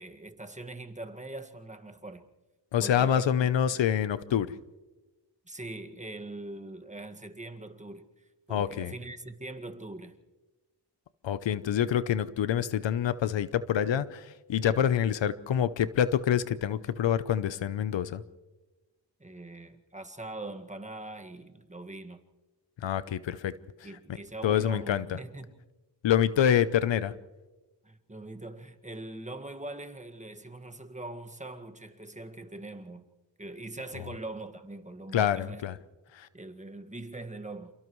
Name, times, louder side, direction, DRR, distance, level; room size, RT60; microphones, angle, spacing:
voice 1, 0.0-2.3 2.8-3.8 5.4-10.2 19.2-22.2 23.8-25.6 26.4-26.6 27.8-33.0 33.4-35.6 36.3-37.7, right 2 dB, 15° right, 1.8 m, -42 dB
voice 2, 2.7-4.5 8.5-8.9 11.2-18.2 22.8-23.5 24.4-25.0 26.0-27.1 35.1-35.7 36.2-36.3, left 9 dB, 85° left, 0.8 m, -26 dB
28.5 x 28.5 x 3.2 m
cardioid pair, 70°, 43 cm